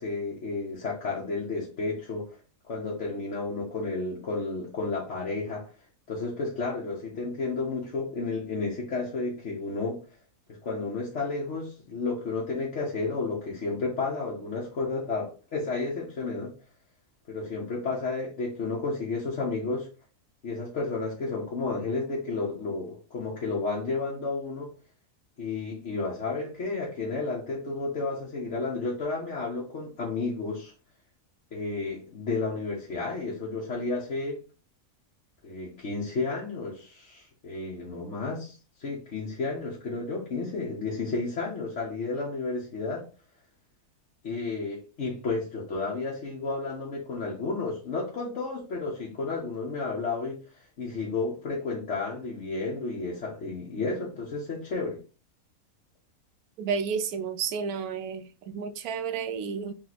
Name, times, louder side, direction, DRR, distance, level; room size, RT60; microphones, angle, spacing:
voice 1, 0.0-2.3 2.7-5.6 6.1-10.0 10.5-16.5 17.3-19.9 20.4-24.7 25.4-30.7 31.5-34.4 35.4-43.0 44.2-50.4 50.8-55.0, left 3 dB, 50° left, 1.3 m, -32 dB
voice 2, 56.6-59.7, right 6 dB, 75° right, 1.1 m, -31 dB
3.5 x 3.2 x 4.0 m
omnidirectional pair, 1.6 m